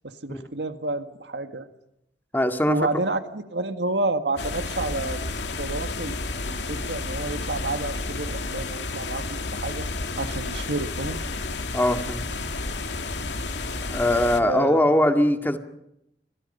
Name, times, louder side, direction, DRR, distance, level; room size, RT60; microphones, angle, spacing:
voice 1, 0.0-1.7 2.7-5.2 5.6-6.2 6.5-9.9 10.2-11.2 14.4-14.8, right 2 dB, 75° right, 8 dB, 1.9 m, -29 dB
voice 2, 2.3-2.8 11.7-12.2 13.9-15.6, left 1 dB, 10° left, 6 dB, 2.0 m, -21 dB
sound 1, 4.4-14.4, left 3 dB, 75° left, 2.5 m, -31 dB
29.5 x 24.0 x 5.6 m, 0.82 s
head